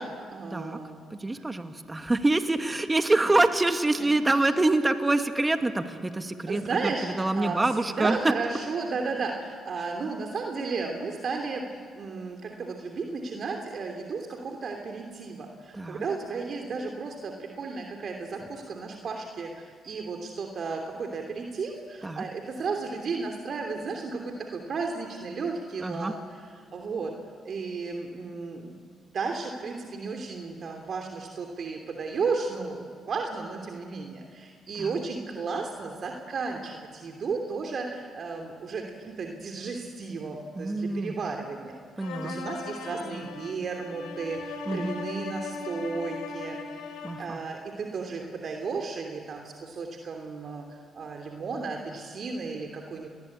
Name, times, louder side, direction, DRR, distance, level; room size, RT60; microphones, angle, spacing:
voice 1, 0.0-1.0 1.3-1.5 4.3-4.5 6.5-11.7 11.9-27.1 27.4-46.6 47.2-53.1, right 4 dB, 55° right, 2 dB, 3.0 m, -34 dB
voice 2, 1.1-8.3 15.7-16.0 22.0-22.2 25.8-26.1 34.8-35.0 40.6-41.1 42.0-42.4 44.7-44.9 47.0-47.4, right 2 dB, 20° right, 7 dB, 2.3 m, -26 dB
sound 1, 42.0-47.4, left 4 dB, 80° left, 3.1 m, -38 dB
29.0 x 21.0 x 8.6 m, 2.1 s
hypercardioid pair, 50°, 0 cm